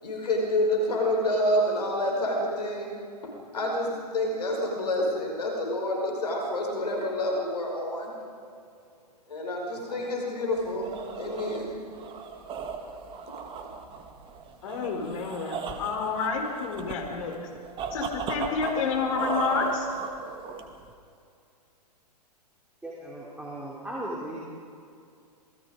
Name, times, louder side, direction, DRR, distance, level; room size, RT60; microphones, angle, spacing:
voice 1, 0.0-2.9 3.2-8.1 9.3-10.9 11.2-11.7, left 1 dB, 75° left, 0 dB, 5.5 m, -28 dB
sound 1, 10.6-20.9, right 5 dB, 25° right, 2.1 m, -36 dB
voice 2, 14.6-17.4 17.9-19.9, left 5 dB, 55° left, 2 dB, 5.2 m, -29 dB
voice 3, 22.8-24.4, right 1 dB, 5° right, -5 dB, 3.5 m, -37 dB
27.5 x 20.5 x 5.2 m, 2.4 s
figure-of-eight pair, 115°, 21 cm